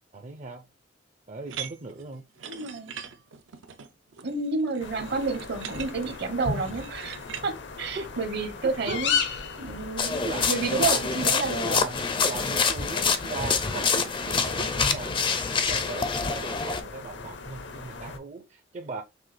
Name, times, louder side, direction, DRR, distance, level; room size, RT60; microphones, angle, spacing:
voice 1, 0.1-0.7 1.3-2.2 7.9-8.1 8.6-9.0 10.2-10.5 10.8-11.1 11.6-19.0, right 4 dB, 40° right, 0.5 m, -38 dB
sound 1, 1.5-7.5, right 8 dB, 85° right, 0.6 m, -42 dB
voice 2, 2.5-2.9 4.2-9.1 9.6-11.7, right 4 dB, 60° right, 0.9 m, -30 dB
sound 2, 4.8-18.2, left 5 dB, 65° left, 0.7 m, -36 dB
sound 3, 10.0-16.8, left 5 dB, 25° left, 0.4 m, -26 dB
6.0 x 2.4 x 3.1 m
head